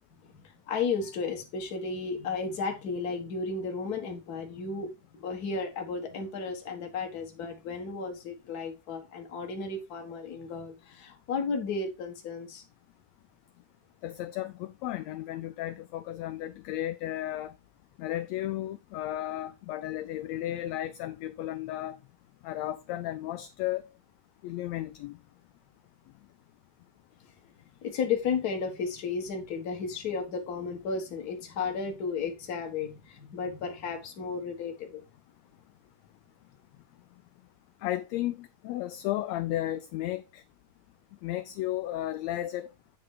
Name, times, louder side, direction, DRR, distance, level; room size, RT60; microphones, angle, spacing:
voice 1, 0.2-12.6 27.8-35.0, left 5 dB, 40° left, 1.5 m, -33 dB
voice 2, 14.0-17.5 18.0-22.0 22.4-23.9 24.4-25.2 37.8-40.4 41.2-42.7, left 14 dB, 80° left, 1.6 m, -34 dB
8.5 x 4.0 x 4.8 m
omnidirectional pair, 3.5 m